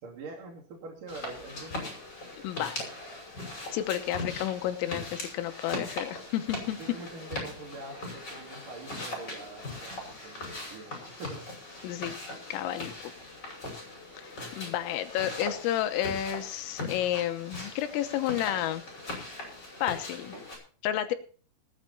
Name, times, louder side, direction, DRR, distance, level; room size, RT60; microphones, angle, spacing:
voice 1, 0.0-2.0 6.8-11.5, right 3 dB, 45° right, -1 dB, 3.8 m, -44 dB
sound 1, 1.1-20.6, left 2 dB, 20° left, 5.7 m, -40 dB
voice 2, 2.4-2.8 3.7-6.8 11.8-12.1 12.5-12.9 14.2-14.3 14.5-18.8 19.8-20.4 20.8-21.1, left 12 dB, 85° left, 8 dB, 3.6 m, -31 dB
19.5 x 8.9 x 4.3 m, 0.42 s
omnidirectional pair, 5.9 m